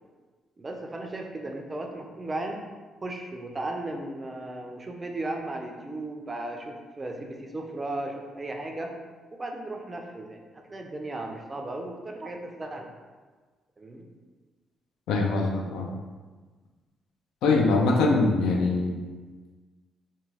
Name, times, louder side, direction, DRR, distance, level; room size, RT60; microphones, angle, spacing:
voice 1, 0.6-2.6 3.0-8.9 9.3-10.4 10.7-12.9 13.8-14.1, right 2 dB, 25° right, 2 dB, 0.4 m, -35 dB
voice 2, 15.1-15.9 17.4-19.0, left 3 dB, 90° left, 1 dB, 0.4 m, -23 dB
2.3 x 2.2 x 3.1 m, 1.4 s
cardioid pair, 90°, 0 cm